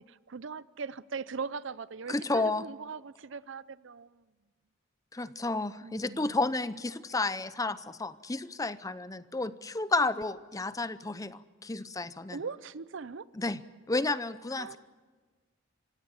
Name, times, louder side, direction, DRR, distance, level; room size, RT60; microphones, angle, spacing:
voice 1, 0.0-4.2 5.8-6.4 12.3-13.3 14.5-14.8, right 5 dB, 65° right, 0.6 m, -40 dB
voice 2, 2.1-2.7 5.1-12.4 13.3-13.6 13.9-14.8, left 2 dB, 15° left, 0.6 m, -31 dB
26.5 x 16.5 x 7.2 m
head